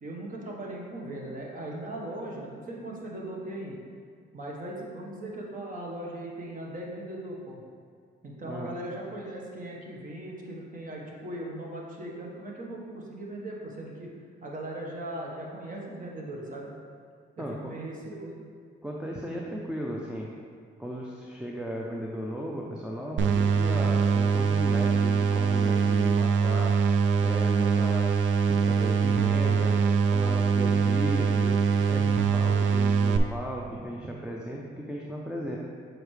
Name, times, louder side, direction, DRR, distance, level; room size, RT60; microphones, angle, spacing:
voice 1, 0.0-3.8 4.3-7.6 8.2-14.1 14.4-16.7 17.4-18.4, right 1 dB, 45° right, -2 dB, 1.3 m, -39 dB
voice 2, 17.4-17.8 18.8-20.3 20.8-26.7 27.2-29.8 30.1-31.6 31.9-35.6, equal, 5° right, -3 dB, 0.5 m, -36 dB
sound 1, 23.2-33.2, right 6 dB, 75° right, 0.4 m, -23 dB
6.8 x 4.6 x 3.3 m, 2.1 s
cardioid pair, 90°, 20 cm